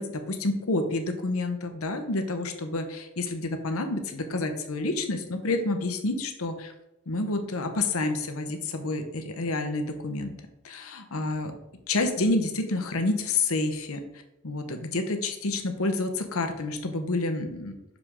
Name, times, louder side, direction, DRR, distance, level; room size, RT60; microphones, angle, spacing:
voice 1, 0.0-6.7 7.1-10.3 10.6-11.5 11.9-14.0 14.4-17.8, left 2 dB, 80° left, 6 dB, 0.9 m, -29 dB
6.4 x 5.1 x 3.6 m, 0.88 s
head